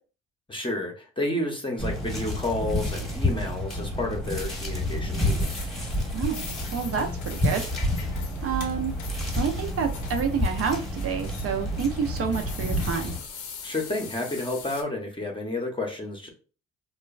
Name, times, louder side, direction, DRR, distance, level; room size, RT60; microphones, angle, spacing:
voice 1, 0.5-5.6 13.6-16.3, left 2 dB, 15° left, 2 dB, 0.7 m, -31 dB
sound 1, 1.8-13.2, left 1 dB, ahead, 1.0 m, -29 dB
sound 2, 5.3-14.8, left 6 dB, 75° left, 0.7 m, -42 dB
voice 2, 6.1-7.6 8.4-8.9 9.3-13.2, right 7 dB, 50° right, 4 dB, 0.4 m, -29 dB
3.0 x 2.2 x 2.3 m, 0.37 s
cardioid pair, 90°, 30 cm